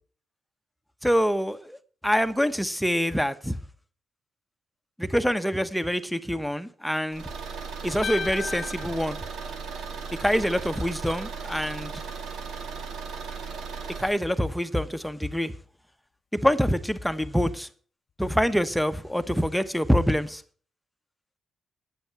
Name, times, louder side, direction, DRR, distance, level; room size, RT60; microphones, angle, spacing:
voice 1, 1.0-1.8 2.0-3.5 5.0-7.2 7.8-9.2 10.2-12.0 14.0-15.5 16.4-17.7 18.2-20.4, equal, ahead, 1.1 m, -25 dB
Car / Engine, 7.1-14.2, right 5 dB, 80° right, 2.1 m, -36 dB
sound 1, 8.0-10.3, left 6 dB, 55° left, 0.9 m, -36 dB
11.0 x 9.2 x 5.8 m
cardioid pair, 75°, 0 cm